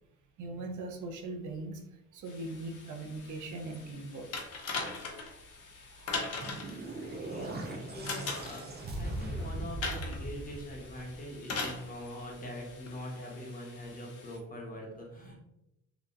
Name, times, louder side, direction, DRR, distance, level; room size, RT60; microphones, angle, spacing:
voice 1, 0.4-1.8 2.1-4.3 8.8-9.1 15.2-15.4, right 2 dB, 75° right, 3 dB, 0.7 m, -40 dB
sound 1, 2.2-14.4, left 3 dB, 85° left, 0.8 m, -56 dB
sound 2, 4.3-5.3 6.1-6.8 8.0-8.6 9.8-10.2 11.4-11.8 12.9-13.0, left 4 dB, 55° left, 0.9 m, -36 dB
sound 3, 6.0-11.4, right 2 dB, 35° right, 0.5 m, -40 dB
voice 2, 7.0-15.4, left 1 dB, 30° left, -2 dB, 1.1 m, -43 dB
3.3 x 2.9 x 2.5 m, 0.89 s
cardioid pair, 90°, 30 cm